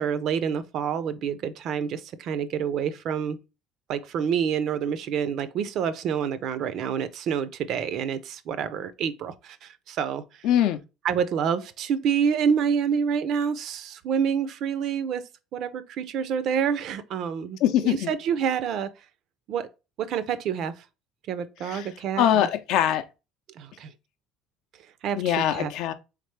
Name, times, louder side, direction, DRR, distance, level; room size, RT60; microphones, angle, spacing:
voice 1, 0.0-3.4 3.9-10.2 11.0-15.2 15.5-18.9 19.5-19.7 20.0-20.7 21.3-22.5 23.6-23.9 25.0-25.7, right 7 dB, 55° right, 0.4 m, -27 dB
voice 2, 10.4-10.8 17.6-18.1 21.7-21.9 22.2-23.0 25.1-25.9, left 11 dB, 70° left, 0.5 m, -22 dB
3.5 x 3.3 x 3.1 m
cardioid pair, 130°, 0 cm